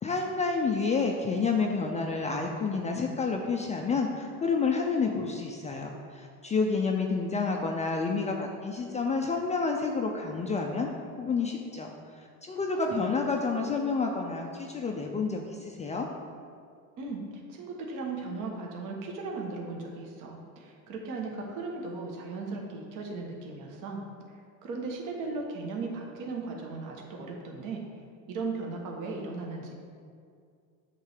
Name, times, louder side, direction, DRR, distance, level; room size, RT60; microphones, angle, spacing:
voice 1, 0.0-10.9 11.2-16.1, left 4 dB, 20° left, 2 dB, 0.4 m, -29 dB
voice 2, 12.9-13.3 17.0-24.0 24.3-27.8 28.3-29.7, right 3 dB, 50° right, 0 dB, 1.3 m, -37 dB
8.2 x 3.3 x 6.5 m, 2.2 s
supercardioid pair, 120°, 41 cm